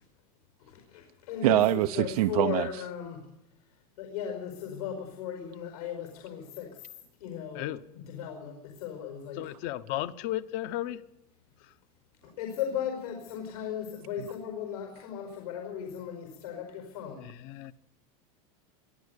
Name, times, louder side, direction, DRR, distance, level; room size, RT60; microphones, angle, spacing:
voice 1, 0.7-3.2 4.0-6.8 7.2-9.4 12.2-17.3, left 9 dB, 85° left, 5.0 m, -36 dB
voice 2, 1.4-2.7, right 15 dB, 90° right, 0.7 m, -24 dB
voice 3, 9.4-11.0 17.2-17.7, left 14 dB, 45° left, 0.9 m, -34 dB
23.0 x 14.0 x 8.3 m
supercardioid pair, 165°, 19 cm